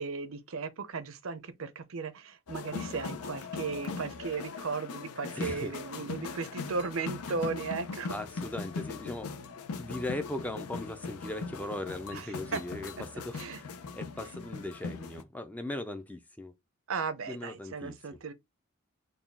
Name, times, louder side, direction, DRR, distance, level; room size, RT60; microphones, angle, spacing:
voice 1, 0.0-8.2 12.1-12.2 12.5-12.6 13.3-13.6 16.9-18.3, right 4 dB, 65° right, 0.6 m, -36 dB
sound 1, 2.5-15.2, left 4 dB, 90° left, 0.6 m, -40 dB
voice 2, 5.3-5.7 8.1-16.5 17.3-18.2, left 1 dB, 5° left, 0.4 m, -39 dB
4.0 x 2.3 x 3.4 m
head